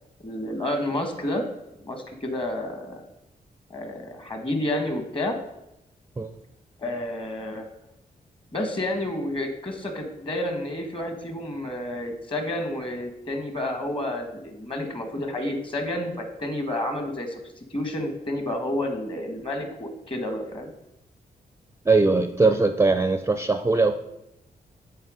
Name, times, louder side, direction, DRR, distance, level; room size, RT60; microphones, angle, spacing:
voice 1, 0.2-1.4 1.8-3.0 3.7-5.4 6.8-7.7 8.5-17.4 17.7-20.7, left 1 dB, 30° left, 5 dB, 1.4 m, -30 dB
voice 2, 21.9-23.9, right 3 dB, 15° right, 8 dB, 0.4 m, -20 dB
8.7 x 3.8 x 5.0 m, 0.87 s
wide cardioid pair, 100°, 16 cm